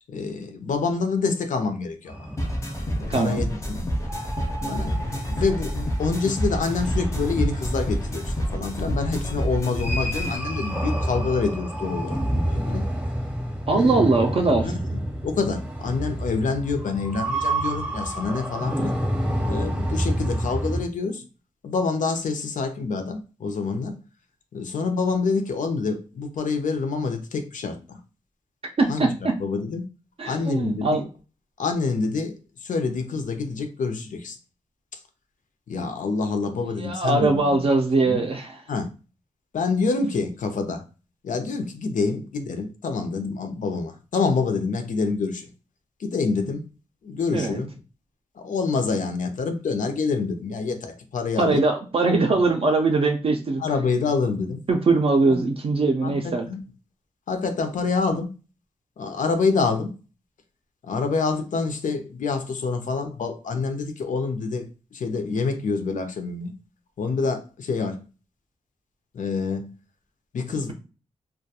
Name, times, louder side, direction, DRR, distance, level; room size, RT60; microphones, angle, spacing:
voice 1, 0.1-2.3 3.0-3.9 4.6-12.9 13.7-14.0 14.6-14.8 15.2-18.9 19.4-21.2 21.6-24.0 24.5-28.0 28.9-29.1 29.4-29.9 30.3-31.1 31.6-34.4 35.7-37.6 38.1-38.3 38.7-38.9 39.5-40.8 41.2-45.5 46.0-46.7 47.0-47.7 48.4-51.6 53.6-54.6 56.0-56.6 57.3-58.3 59.0-60.0 60.8-66.5 67.0-68.0 69.1-69.7 70.3-70.7, left 4 dB, 90° left, 0.5 m, -27 dB
sound 1, 2.1-20.8, right 1 dB, 10° right, 0.7 m, -29 dB
sound 2, 2.4-10.4, equal, 25° left, 0.5 m, -28 dB
voice 2, 3.1-3.4 13.7-14.7 28.8-29.3 30.2-31.0 36.5-38.6 47.3-47.6 51.4-53.6 54.7-56.5, right 3 dB, 45° right, 0.3 m, -21 dB
2.3 x 2.1 x 2.8 m
wide cardioid pair, 155°, 13 cm